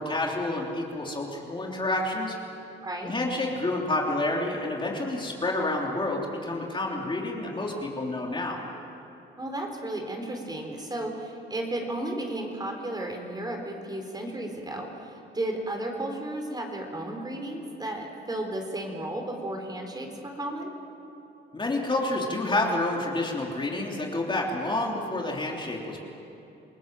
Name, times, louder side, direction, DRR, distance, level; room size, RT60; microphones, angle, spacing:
voice 1, 0.0-2.4 3.0-8.6 21.5-26.0, left 2 dB, 25° left, -1 dB, 3.5 m, -29 dB
voice 2, 2.8-3.1 9.4-20.7, right 1 dB, 20° right, 2 dB, 4.3 m, -34 dB
28.5 x 18.5 x 7.7 m, 2.9 s
cardioid pair, 90°, 20 cm